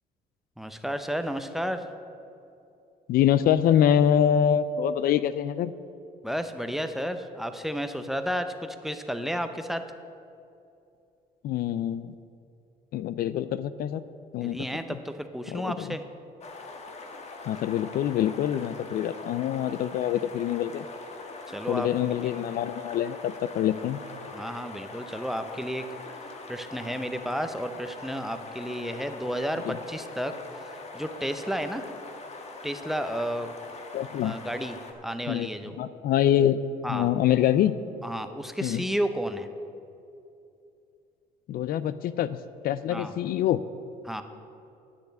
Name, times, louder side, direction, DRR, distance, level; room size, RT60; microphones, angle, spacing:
voice 1, 0.6-1.9 6.2-9.9 14.4-16.0 21.5-21.9 22.2-22.3 24.3-25.9 26.5-31.9 32.6-33.5 34.2-35.7 36.8-37.1 38.0-39.5 42.9-43.1 44.0-44.2, equal, ahead, 9 dB, 0.6 m, -32 dB
voice 2, 3.1-5.7 11.4-12.1 12.9-14.0 14.3-14.6 15.5-16.0 17.5-20.8 21.7-24.0 29.7-29.8 33.9-34.3 35.3-35.5 35.8-36.6 36.9-37.7 38.6-38.8 41.5-42.4 42.6-43.6, left 10 dB, 60° left, 15 dB, 0.4 m, -25 dB
sound 1, 16.4-34.9, left 3 dB, 40° left, 1.3 m, -42 dB
9.9 x 6.7 x 8.2 m, 2.6 s
cardioid pair, 110°, 17 cm